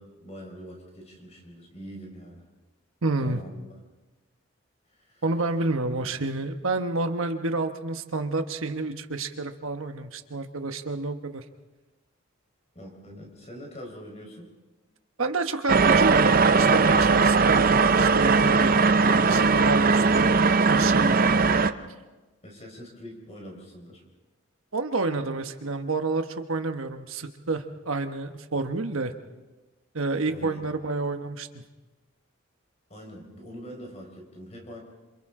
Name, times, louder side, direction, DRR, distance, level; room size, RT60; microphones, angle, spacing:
voice 1, 0.0-2.4 3.2-3.8 5.0-5.2 6.0-6.1 12.7-14.5 22.4-24.0 30.3-30.7 32.9-34.8, equal, 30° left, 1 dB, 4.7 m, -43 dB
voice 2, 3.0-3.4 5.2-11.4 15.2-20.3 20.7-21.2 24.7-29.1 29.9-31.6, right 3 dB, 75° right, 7 dB, 1.2 m, -29 dB
sound 1, 15.7-21.7, right 4 dB, 40° right, 0.6 m, -19 dB
28.0 x 27.0 x 3.8 m, 1.2 s
head